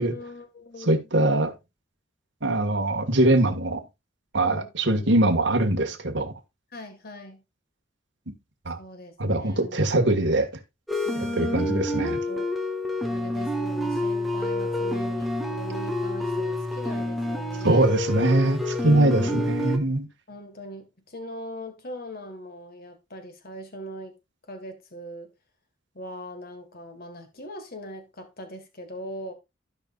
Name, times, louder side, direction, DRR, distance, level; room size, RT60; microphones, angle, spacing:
voice 1, 0.0-1.1 4.4-5.1 6.7-7.4 8.8-10.2 11.0-12.5 13.1-18.0 18.8-19.8 20.3-24.1 24.5-25.3 26.0-29.3, equal, 50° left, 1.8 m, -40 dB
voice 2, 0.8-1.5 2.4-3.8 4.3-6.3 8.3-8.4 8.7-8.8 9.2-10.5 11.2-12.2 17.6-20.1, right 2 dB, 65° right, 1.7 m, -22 dB
sound 1, 10.9-19.8, left 1 dB, ahead, 1.2 m, -28 dB
15.5 x 5.4 x 2.4 m
head